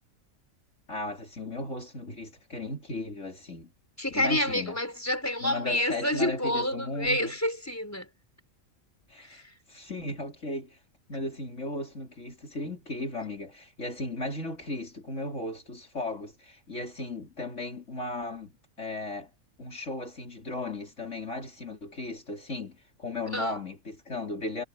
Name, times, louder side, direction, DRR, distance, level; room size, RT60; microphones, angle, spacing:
voice 1, 0.9-3.7 4.1-4.8 5.4-7.3 9.1-9.4 9.7-10.8 11.1-19.3 19.6-24.6, left 2 dB, 55° left, 4.2 m, -36 dB
voice 2, 4.0-8.1 9.2-9.5 23.3-23.6, left 1 dB, 10° left, 5.2 m, -29 dB
omnidirectional pair, 1.5 m